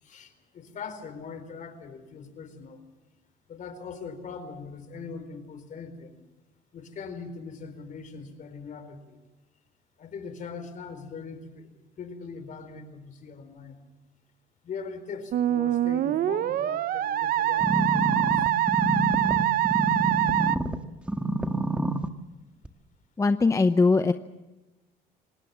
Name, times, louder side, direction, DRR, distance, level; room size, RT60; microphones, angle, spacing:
voice 1, 0.0-2.8 3.5-6.2 6.7-9.2 10.0-11.7 12.0-13.8 14.6-18.5, left 5 dB, 50° left, 10 dB, 4.2 m, -41 dB
Musical instrument, 15.3-20.6, right 12 dB, 60° right, 0.8 m, -24 dB
sound 1, 17.6-20.8 21.1-22.1 22.6-22.7, right 1 dB, 5° right, 1.5 m, -27 dB
voice 2, 23.2-24.1, left 3 dB, 20° left, 10 dB, 0.8 m, -20 dB
27.0 x 19.0 x 7.4 m, 1.1 s
cardioid pair, 110°, 17 cm